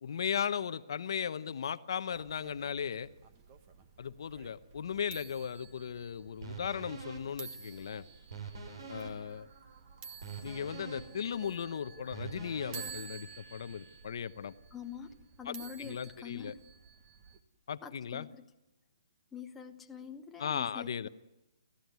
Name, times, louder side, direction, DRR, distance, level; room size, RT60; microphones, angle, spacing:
voice 1, 0.0-3.1 4.0-8.1 8.9-9.5 10.4-14.5 15.5-15.6 15.8-16.5 17.7-18.3 20.4-21.1, left 7 dB, 55° left, 12 dB, 0.9 m, -37 dB
sound 1, 2.1-17.4, right 6 dB, 25° right, 1.5 m, -52 dB
sound 2, 6.4-14.0, right 4 dB, 55° right, 5.2 m, -47 dB
voice 2, 14.7-16.6 17.8-18.5 19.3-21.1, left 7 dB, 5° left, 2 dB, 1.0 m, -46 dB
29.5 x 14.5 x 9.5 m, 0.95 s
hypercardioid pair, 165°, 3 cm